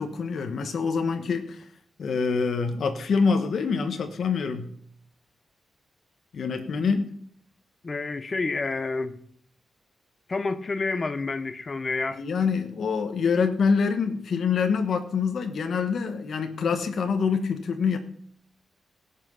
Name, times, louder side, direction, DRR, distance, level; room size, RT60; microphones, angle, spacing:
voice 1, 0.0-1.7 2.0-4.7 6.3-7.1 12.1-18.0, left 5 dB, 65° left, 1.2 m, -25 dB
voice 2, 7.8-9.2 10.3-12.2, left 3 dB, 30° left, 0.9 m, -29 dB
17.0 x 5.9 x 5.6 m
wide cardioid pair, 145°, 0 cm